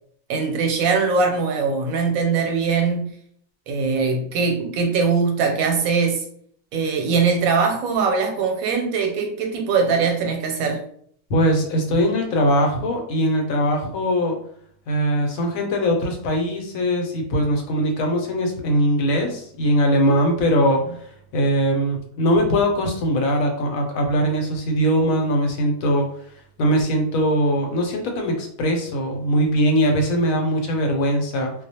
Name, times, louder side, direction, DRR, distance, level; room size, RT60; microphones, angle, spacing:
voice 1, 0.3-3.1 3.7-6.2 6.7-10.8, right 5 dB, 90° right, 3 dB, 1.1 m, -21 dB
voice 2, 11.3-14.4 14.9-26.1 26.6-31.5, equal, 85° left, 3 dB, 1.1 m, -21 dB
2.4 x 2.1 x 2.7 m, 0.62 s
omnidirectional pair, 1.4 m